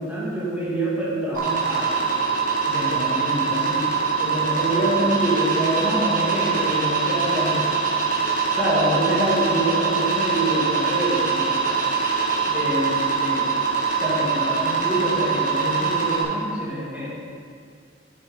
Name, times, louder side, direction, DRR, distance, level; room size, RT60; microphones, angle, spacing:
voice 1, 0.0-2.1 2.7-3.9 4.2-7.7 8.6-11.8 12.5-13.5 14.0-17.2, equal, 10° right, -8 dB, 2.1 m, -26 dB
sound 1, 1.3-16.2, right 5 dB, 45° right, 1.8 m, -23 dB
10.0 x 7.7 x 3.8 m, 2.3 s
head